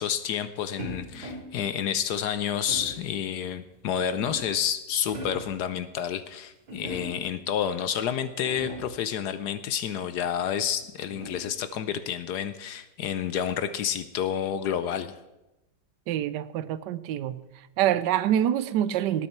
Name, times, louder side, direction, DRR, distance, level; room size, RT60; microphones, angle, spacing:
voice 1, 0.0-15.1, left 9 dB, 70° left, 1.1 m, -29 dB
sound 1, 0.8-1.6 2.7-3.1 3.8-4.6 5.0-5.6 6.7-7.4 8.0-8.1 8.3-9.0 10.4-11.6, right 1 dB, 55° right, 4.0 m, -40 dB
voice 2, 16.1-17.4 17.8-19.3, right 11 dB, 75° right, 1.2 m, -26 dB
18.0 x 8.7 x 4.4 m
omnidirectional pair, 2.0 m